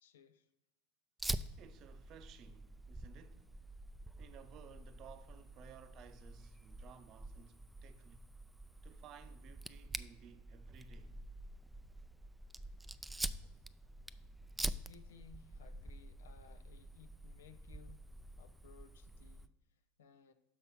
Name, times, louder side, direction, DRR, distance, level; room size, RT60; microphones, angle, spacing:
voice 1, 0.0-0.5 14.6-18.1 18.4-20.3, left 7 dB, 80° left, 0.6 m, -61 dB
Fire, 1.2-19.5, right 1 dB, 5° right, 0.4 m, -46 dB
voice 2, 1.6-3.7 4.2-8.3 8.8-11.2, right 8 dB, 45° right, 0.7 m, -58 dB
6.3 x 5.5 x 5.6 m
hypercardioid pair, 95°, 0 cm